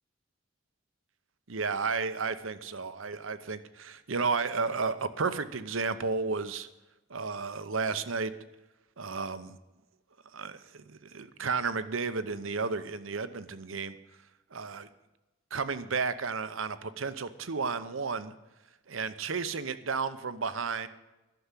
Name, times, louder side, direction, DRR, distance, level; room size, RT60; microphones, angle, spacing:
voice 1, 1.5-6.7 7.1-8.3 9.0-9.5 10.3-14.0 14.5-14.9 15.5-18.3 18.9-20.9, right 4 dB, 75° right, 12 dB, 0.8 m, -32 dB
12.0 x 7.1 x 9.7 m, 1.0 s
head